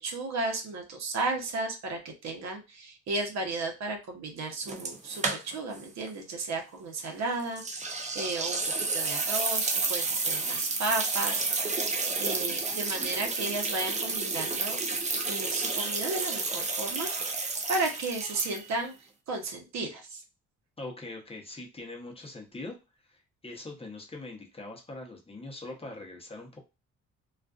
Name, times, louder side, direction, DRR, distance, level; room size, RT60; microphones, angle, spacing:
voice 1, 0.0-14.8 15.3-20.2, right 3 dB, 65° right, 3 dB, 0.8 m, -34 dB
sound 1, 4.7-5.8 6.1-6.2 7.6-18.9, right 3 dB, 25° right, 0.5 m, -31 dB
voice 2, 20.8-22.8 23.0-26.6, left 2 dB, 20° left, 0 dB, 0.8 m, -42 dB
2.4 x 2.4 x 2.3 m, 0.28 s
cardioid pair, 90°, 30 cm